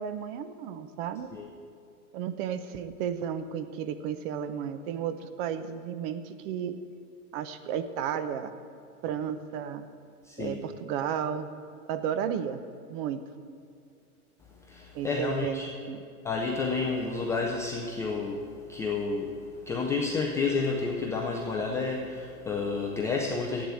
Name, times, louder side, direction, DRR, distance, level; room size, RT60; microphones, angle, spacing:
voice 1, 0.0-1.3 2.1-6.7 7.3-8.5 9.0-9.8 10.4-11.5 11.9-12.6 12.9-13.2 14.9-16.0, right 8 dB, 40° right, 10 dB, 1.0 m, -33 dB
voice 2, 10.2-10.6 14.7-15.7 16.2-23.7, left 4 dB, 5° left, -1 dB, 0.3 m, -30 dB
11.5 x 8.4 x 8.7 m, 2.4 s
hypercardioid pair, 125°, 44 cm